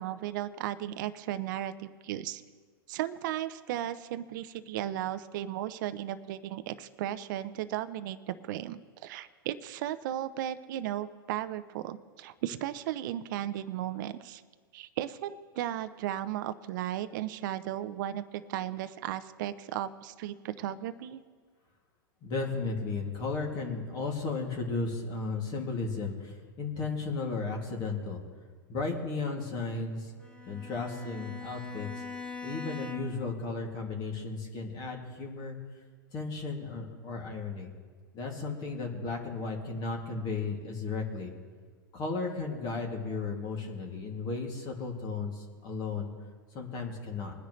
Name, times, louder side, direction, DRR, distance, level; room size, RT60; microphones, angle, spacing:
voice 1, 0.0-2.4 2.9-14.4 14.7-21.2, right 12 dB, 60° right, 11 dB, 0.7 m, -35 dB
voice 2, 22.2-28.2 28.7-30.1 30.5-31.9 32.4-35.6 36.1-37.7 38.1-41.3 41.9-46.1 46.5-47.3, left 3 dB, 40° left, 0 dB, 2.5 m, -34 dB
Bowed string instrument, 30.2-33.3, left 5 dB, 10° left, 1.4 m, -42 dB
21.5 x 10.0 x 3.2 m, 1.5 s
hypercardioid pair, 110°, 12 cm